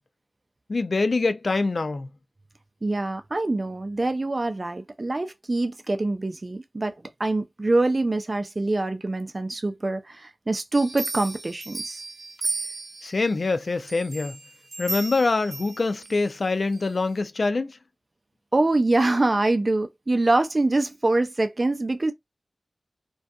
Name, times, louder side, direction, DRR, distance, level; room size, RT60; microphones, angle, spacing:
voice 1, 0.7-2.1 13.0-14.4 14.8-17.8, left 3 dB, 70° left, 0.3 m, -25 dB
voice 2, 2.8-12.0 18.5-22.1, right 2 dB, 45° right, 0.3 m, -24 dB
sound 1, 10.7-13.3 13.9-16.2 16.7-16.8, right 2 dB, 65° right, 0.8 m, -34 dB
2.5 x 2.3 x 2.2 m
cardioid pair, 40°, 0 cm